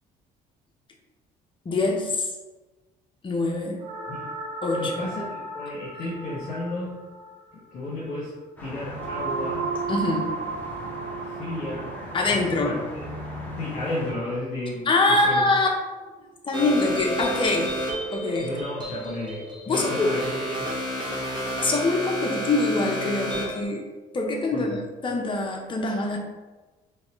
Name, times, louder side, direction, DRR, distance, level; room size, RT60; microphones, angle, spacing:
voice 1, 1.6-2.3 3.2-3.8 4.6-5.0 9.9-10.3 12.1-12.8 14.9-15.7 16.5-17.7 18.1-18.5 19.7-20.1 21.6-23.8 24.1-26.2, left 2 dB, 30° left, 0 dB, 0.8 m, -24 dB
sound 1, 3.8-14.0, right 4 dB, 45° right, 0.8 m, -35 dB
voice 2, 4.8-7.0 7.5-8.3 8.6-9.7 11.4-11.9 12.3-13.0 13.6-14.9 15.2-15.4 18.4-20.6 24.5-24.8, left 1 dB, 55° left, -7 dB, 1.4 m, -33 dB
sound 2, 8.6-14.1, left 1 dB, 10° left, 1.2 m, -38 dB
sound 3, 16.5-23.6, equal, 25° right, 1.3 m, -31 dB
4.0 x 3.3 x 3.1 m, 1.2 s
cardioid pair, 110°, 17 cm